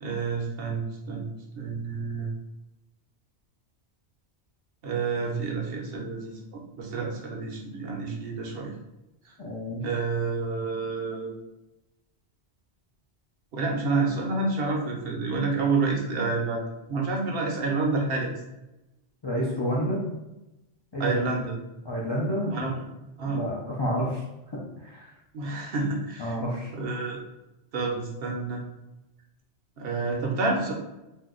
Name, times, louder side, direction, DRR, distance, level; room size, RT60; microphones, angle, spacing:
voice 1, 0.0-2.3 4.8-8.7 9.8-11.3 13.5-18.3 21.0-21.5 22.5-22.7 23.2-23.4 25.3-26.3 26.7-27.2 27.7-28.6 29.8-30.7, right 3 dB, 65° right, 0 dB, 0.8 m, -29 dB
voice 2, 9.4-9.8 19.2-20.0 20.9-21.2 21.8-22.7 23.2-24.2 24.8-25.1 26.2-26.7, equal, 40° left, -5 dB, 0.4 m, -29 dB
2.6 x 2.2 x 3.6 m, 0.95 s
omnidirectional pair, 1.1 m